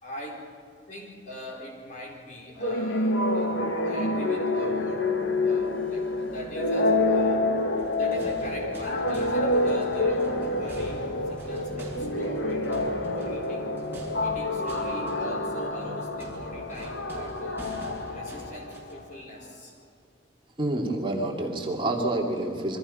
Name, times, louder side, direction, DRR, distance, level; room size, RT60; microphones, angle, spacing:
voice 1, 0.0-0.6 0.9-5.2 5.4-7.5 8.0-13.7 14.2-17.7 18.1-19.8, equal, 40° left, -1 dB, 4.6 m, -41 dB
sound 1, 2.6-19.0, left 2 dB, 85° left, 1.7 m, -27 dB
sound 2, 4.9-16.8, right 1 dB, 5° left, 2.5 m, -45 dB
sound 3, 7.6-19.1, equal, 10° right, 6.2 m, -45 dB
voice 2, 20.6-22.8, right 1 dB, 25° right, 0 dB, 2.5 m, -28 dB
28.0 x 23.0 x 5.5 m, 2.4 s
head